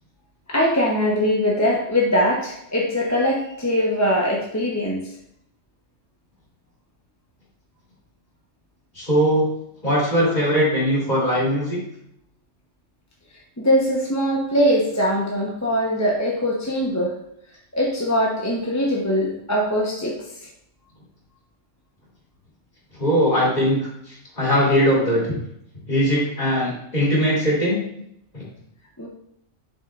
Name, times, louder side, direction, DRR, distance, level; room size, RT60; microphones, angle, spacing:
voice 1, 0.5-5.1 13.6-17.1 17.7-20.5 29.0-29.1, equal, 15° left, -2 dB, 0.8 m, -22 dB
voice 2, 8.9-9.5 9.8-11.8 22.9-25.4 25.9-27.8 28.3-28.5, equal, 35° left, -5 dB, 2.9 m, -20 dB
8.2 x 6.5 x 2.4 m, 0.75 s
omnidirectional pair, 1.2 m